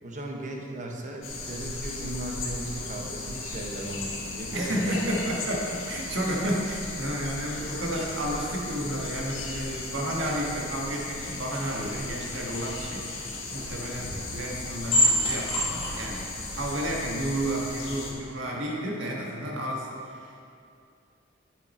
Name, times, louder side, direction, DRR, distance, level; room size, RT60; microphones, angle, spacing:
voice 1, 0.0-4.9 5.3-5.6 14.0-14.3, right 1 dB, 40° right, 0 dB, 1.0 m, -37 dB
sound 1, 1.2-18.1, left 3 dB, 85° left, 1.5 m, -37 dB
voice 2, 4.5-20.4, right 1 dB, 70° right, -2 dB, 1.5 m, -31 dB
sound 2, 13.6-17.9, equal, 30° left, 1.7 m, -29 dB
9.5 x 6.3 x 4.3 m, 2.5 s
head